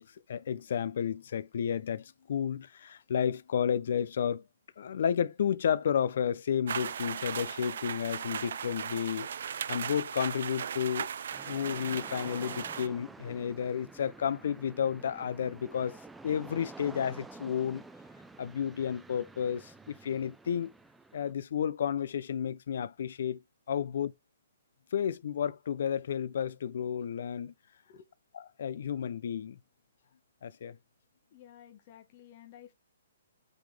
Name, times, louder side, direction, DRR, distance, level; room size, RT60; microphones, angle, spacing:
voice 1, 0.0-4.4 4.8-9.3 9.7-11.1 11.4-17.8 18.4-20.7 21.1-23.4 23.7-24.1 24.9-27.5 28.3-29.6 30.4-30.8, left 8 dB, 60° left, 0.7 m, -32 dB
sound 1, 6.7-12.9, right 8 dB, 60° right, 0.4 m, -37 dB
sound 2, 11.3-21.3, right 3 dB, 5° right, 0.4 m, -50 dB
voice 2, 31.3-32.7, left 10 dB, 35° left, 1.2 m, -53 dB
7.9 x 4.0 x 3.3 m
hypercardioid pair, 160°, 0 cm